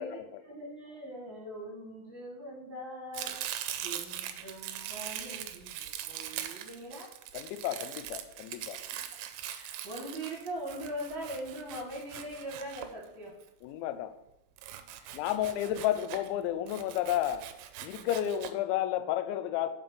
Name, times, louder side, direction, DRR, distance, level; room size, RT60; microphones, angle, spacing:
voice 1, 0.0-7.1 9.4-13.4 14.9-15.3 15.6-15.7, right 1 dB, 55° right, -5 dB, 2.3 m, -42 dB
Domestic sounds home sounds, 3.1-13.4 14.6-16.3 16.7-18.5, right 11 dB, 85° right, 2.7 m, -41 dB
voice 2, 7.3-8.8 13.6-14.1 15.1-17.4 17.8-19.7, left 12 dB, 90° left, 8 dB, 2.9 m, -31 dB
5.5 x 5.2 x 5.8 m, 0.85 s
omnidirectional pair, 5.2 m